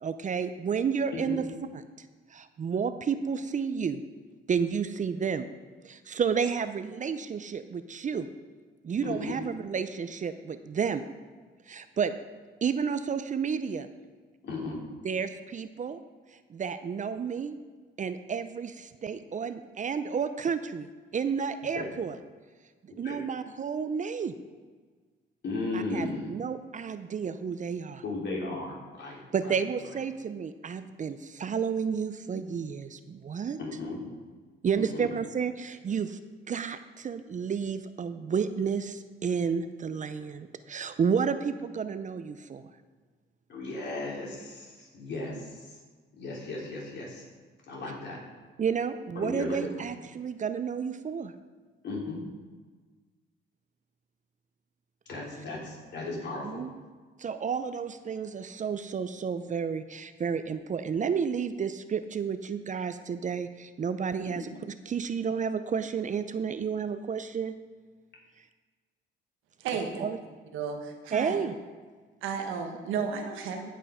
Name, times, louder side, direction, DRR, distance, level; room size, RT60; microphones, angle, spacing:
voice 1, 0.0-1.4 1.7-1.8 2.3-4.0 4.5-5.5 5.8-8.3 8.8-11.0 11.7-12.1 12.6-13.9 15.0-16.0 16.5-17.6 18.0-22.2 22.8-24.3 25.7-28.0 29.3-33.6 34.6-36.2 36.5-42.6 48.6-51.3 56.4-56.7 57.2-64.5 64.9-67.5 70.0-70.2 71.1-71.6, right 6 dB, 40° right, 11 dB, 0.6 m, -31 dB
voice 2, 9.0-9.3 14.4-14.8 21.8-21.9 23.0-23.2 25.4-26.3 28.0-29.6 33.6-34.0 34.7-35.1 43.5-45.8 46.2-47.2 47.7-48.2 49.2-49.6 51.8-52.2 55.1-56.6 64.3-64.5, left 2 dB, 60° left, -3 dB, 3.4 m, -36 dB
voice 3, 69.6-70.1 70.5-71.4 72.2-73.7, right 6 dB, 90° right, 4 dB, 1.3 m, -33 dB
15.0 x 5.6 x 5.0 m, 1.4 s
cardioid pair, 90°, 20 cm